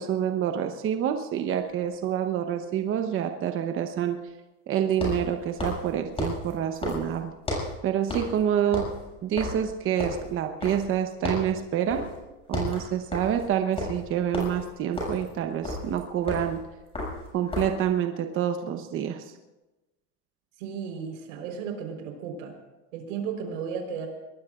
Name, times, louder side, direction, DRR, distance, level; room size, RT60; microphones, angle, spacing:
voice 1, 0.0-4.2 4.7-7.3 7.8-8.9 9.2-12.0 12.5-16.6 17.3-19.3, right 9 dB, 35° right, 6 dB, 1.0 m, -27 dB
sound 1, 1.6-1.7 4.9-7.8 8.1-8.4 8.7-11.0 11.2-11.6 11.9-12.2 12.4-17.8, left 1 dB, 15° left, 7.1 m, -33 dB
voice 2, 20.6-22.5 22.9-24.1, right 6 dB, 85° right, 3 dB, 4.3 m, -34 dB
23.0 x 20.0 x 2.5 m, 1.0 s
supercardioid pair, 145°, 38 cm